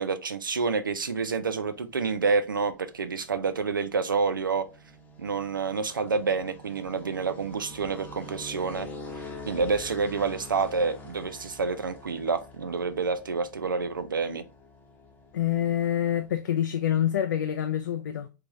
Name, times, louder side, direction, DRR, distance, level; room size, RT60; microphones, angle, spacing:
voice 1, 0.0-4.7 5.2-8.9 9.5-14.4, right 4 dB, 90° right, 0.5 m, -28 dB
sound 1, 0.8-16.4, left 2 dB, 15° left, 0.8 m, -46 dB
voice 2, 15.3-18.3, left 10 dB, 70° left, 0.4 m, -26 dB
3.4 x 3.2 x 2.5 m
hypercardioid pair, 110°, 11 cm